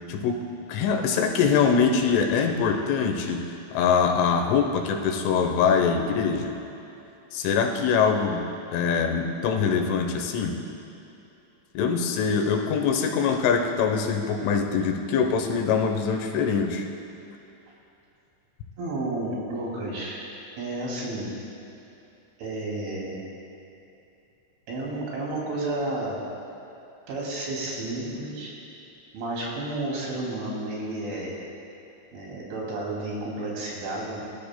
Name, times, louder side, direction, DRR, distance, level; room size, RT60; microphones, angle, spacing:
voice 1, 0.1-6.6 7.3-8.5 8.7-10.6 11.8-16.8, left 6 dB, 85° left, 3 dB, 3.5 m, -23 dB
voice 2, 18.8-20.3 20.6-21.3 22.4-23.2 24.7-26.2 27.1-28.5 29.1-31.4 32.1-34.2, right 2 dB, 80° right, -4 dB, 5.1 m, -31 dB
22.0 x 13.5 x 2.3 m, 2.8 s
omnidirectional pair, 5.5 m